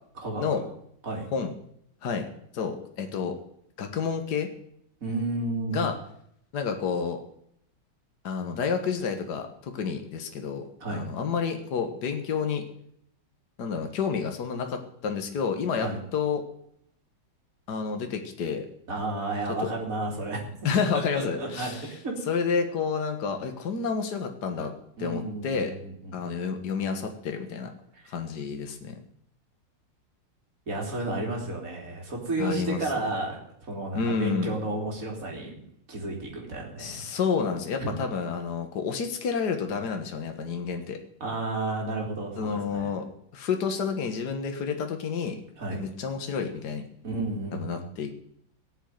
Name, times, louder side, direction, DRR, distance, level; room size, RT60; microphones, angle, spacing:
voice 1, 2.5-3.3 3.8-4.5 5.7-5.9 6.5-7.2 8.2-10.6 10.9-12.6 13.6-16.4 17.7-18.7 20.7-21.8 22.3-24.7 25.0-25.7 26.1-27.7 28.1-29.0 32.4-32.8 33.9-34.6 36.8-41.0 42.4-43.1 43.3-45.4 45.7-46.9 47.5-48.1, left 6 dB, 60° left, 5 dB, 2.0 m, -29 dB
voice 2, 5.0-5.9 10.8-11.0 15.8-16.0 18.9-20.5 20.9-22.2 25.0-26.3 27.9-28.1 30.7-35.5 35.9-37.2 37.8-38.1 41.2-42.9 45.6-45.8 47.0-47.9, right 2 dB, 45° right, -1 dB, 3.7 m, -32 dB
16.5 x 7.4 x 9.3 m, 0.70 s
omnidirectional pair, 2.0 m